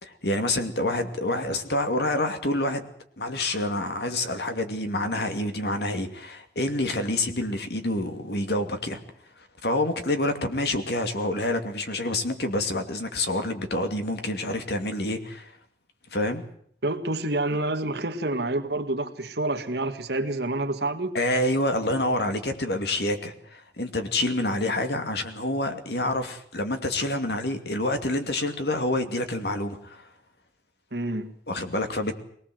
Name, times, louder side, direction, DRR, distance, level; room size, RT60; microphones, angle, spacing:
voice 1, 0.0-2.9 3.2-9.0 9.6-15.5 16.1-16.4 21.1-30.1 31.5-32.1, left 1 dB, 65° left, 7 dB, 2.6 m, -27 dB
voice 2, 16.8-21.1 30.9-31.3, right 2 dB, 65° right, 7 dB, 2.0 m, -28 dB
23.0 x 19.0 x 7.9 m, 0.64 s
head